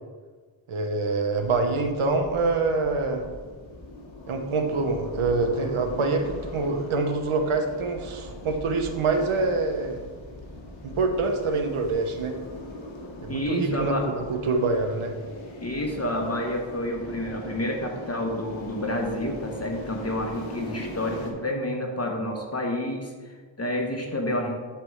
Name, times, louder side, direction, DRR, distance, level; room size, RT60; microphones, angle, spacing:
voice 1, 0.7-3.2 4.3-10.0 10.8-12.4 13.2-15.1, right 3 dB, 85° right, 4 dB, 1.0 m, -25 dB
sound 1, 1.4-21.3, left 2 dB, 70° left, 1.5 m, -40 dB
voice 2, 13.3-14.1 15.6-24.6, left 1 dB, 30° left, 2 dB, 1.2 m, -29 dB
8.1 x 3.4 x 6.4 m, 1.5 s
cardioid pair, 65°, 48 cm